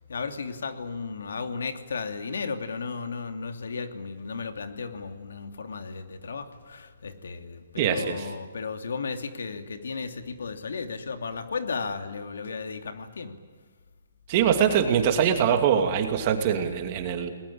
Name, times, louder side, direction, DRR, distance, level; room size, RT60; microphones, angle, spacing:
voice 1, 0.1-13.4, left 4 dB, 80° left, 7 dB, 2.8 m, -34 dB
voice 2, 7.8-8.3 14.3-17.3, right 8 dB, 30° right, 6 dB, 2.6 m, -23 dB
29.5 x 20.5 x 8.7 m, 1.5 s
hypercardioid pair, 170°, 0 cm